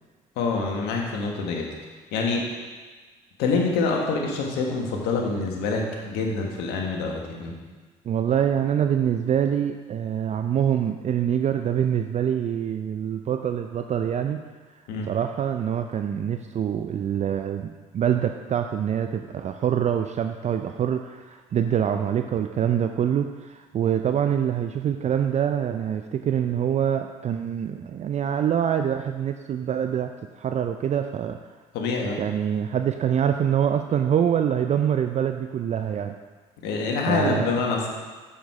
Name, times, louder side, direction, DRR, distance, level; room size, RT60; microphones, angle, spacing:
voice 1, 0.4-1.6 2.1-2.4 3.4-7.5 14.9-15.1 31.7-32.2 36.6-37.9, left 4 dB, 70° left, 0 dB, 1.5 m, -26 dB
voice 2, 8.1-14.4 15.1-31.4 32.2-36.1 37.1-37.5, right 9 dB, 40° right, 7 dB, 0.5 m, -25 dB
7.4 x 6.3 x 4.8 m, 1.4 s
hypercardioid pair, 60°, 17 cm